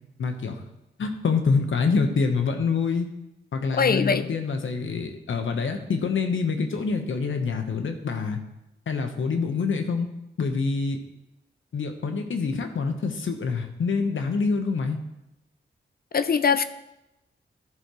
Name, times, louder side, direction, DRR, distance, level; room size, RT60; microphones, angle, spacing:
voice 1, 0.2-0.6 1.0-3.1 3.5-8.4 8.9-10.1 10.4-11.0 11.7-15.0, left 4 dB, 80° left, 6 dB, 1.1 m, -26 dB
voice 2, 3.8-4.2 16.1-16.6, left 6 dB, 50° left, 13 dB, 0.5 m, -21 dB
14.0 x 6.7 x 3.1 m, 0.90 s
wide cardioid pair, 85°, 20 cm